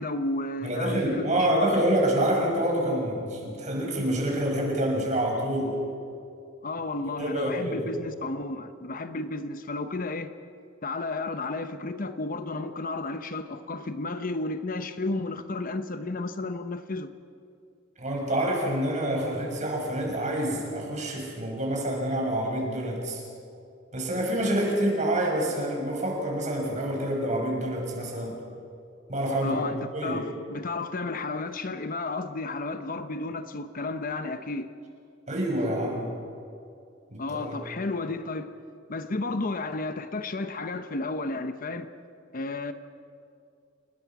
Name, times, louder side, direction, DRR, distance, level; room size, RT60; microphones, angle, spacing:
voice 1, 0.0-1.8 6.6-10.3 10.8-17.1 29.4-34.7 37.2-38.5 38.9-41.9 42.3-42.7, left 3 dB, 45° left, 9 dB, 0.9 m, -32 dB
voice 2, 0.6-5.8 7.1-7.9 18.0-23.2 23.9-28.4 29.1-29.6 29.9-30.2 35.3-36.1 37.1-37.6, right 1 dB, 40° right, -1 dB, 6.4 m, -27 dB
29.5 x 19.5 x 6.0 m, 2.4 s
head